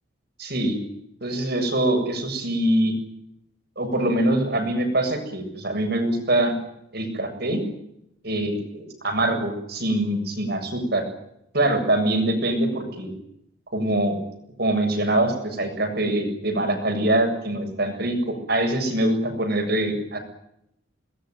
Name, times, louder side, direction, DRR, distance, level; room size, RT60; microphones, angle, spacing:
voice 1, 0.4-0.8 1.2-2.9 3.8-6.5 6.9-7.6 8.2-11.0 11.5-13.1 13.7-14.2 14.6-20.2, right 1 dB, 55° right, 5 dB, 7.4 m, -24 dB
23.0 x 21.0 x 9.4 m, 0.78 s
head